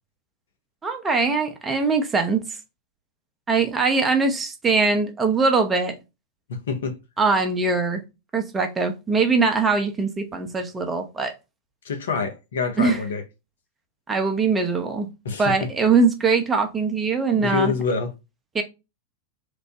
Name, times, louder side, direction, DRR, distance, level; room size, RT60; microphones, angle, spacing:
voice 1, 0.8-2.4 3.5-5.9 7.2-8.0 8.3-11.3 12.8-13.0 14.1-15.1 15.4-17.7 18.5-18.6, right 4 dB, 15° right, 0.6 m, -22 dB
voice 2, 6.5-6.9 11.8-13.2 15.2-15.7 17.3-18.1, left 5 dB, 65° left, 0.6 m, -26 dB
3.0 x 2.0 x 2.7 m
figure-of-eight pair, 90°, 0 cm